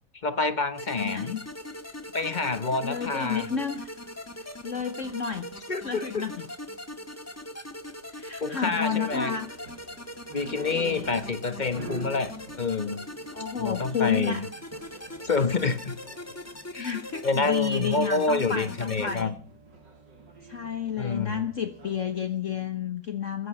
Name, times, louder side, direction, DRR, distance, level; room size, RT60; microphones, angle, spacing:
voice 1, 0.2-1.3 2.1-3.5 5.7-6.2 8.4-9.3 10.3-13.0 13.6-14.5 15.2-15.9 16.7-19.3 21.0-21.4, left 4 dB, 30° left, 11 dB, 1.1 m, -28 dB
sound 1, 0.8-19.2, left 1 dB, 10° left, 1.4 m, -41 dB
voice 2, 1.0-1.4 2.8-4.0 4.4-5.5 5.8-6.5 8.1-9.5 10.8-11.1 13.3-14.4 16.8-19.3 20.4-23.5, left 7 dB, 50° left, 9 dB, 1.3 m, -31 dB
sound 2, 8.9-22.2, right 3 dB, 75° right, 3.8 m, -47 dB
16.0 x 15.0 x 5.5 m, 0.42 s
omnidirectional pair, 1.9 m